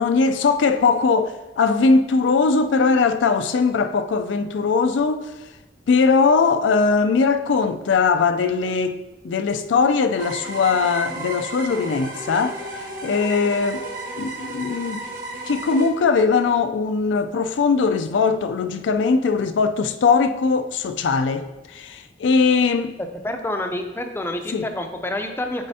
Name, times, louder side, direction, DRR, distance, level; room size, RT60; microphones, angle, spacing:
voice 1, 0.0-5.3 5.9-13.9 14.2-15.0 15.5-23.0 24.5-24.7, left 4 dB, 80° left, 0.4 m, -20 dB
sound 1, 10.2-15.9, right 1 dB, 50° right, 1.3 m, -33 dB
voice 2, 23.2-25.7, left 1 dB, 15° left, 0.5 m, -28 dB
8.8 x 4.2 x 2.7 m
head